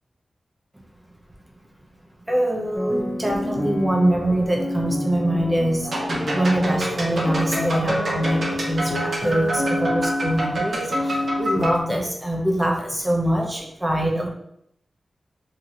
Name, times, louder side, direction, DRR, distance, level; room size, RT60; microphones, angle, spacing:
voice 1, 2.3-5.8 6.1-14.3, right 1 dB, 10° right, -1 dB, 0.7 m, -24 dB
sound 1, 2.7-11.9, left 1 dB, 30° left, 0.8 m, -28 dB
sound 2, 5.8-11.8, right 1 dB, 65° right, 0.7 m, -28 dB
3.2 x 2.8 x 2.4 m, 0.74 s
wide cardioid pair, 105°, 0 cm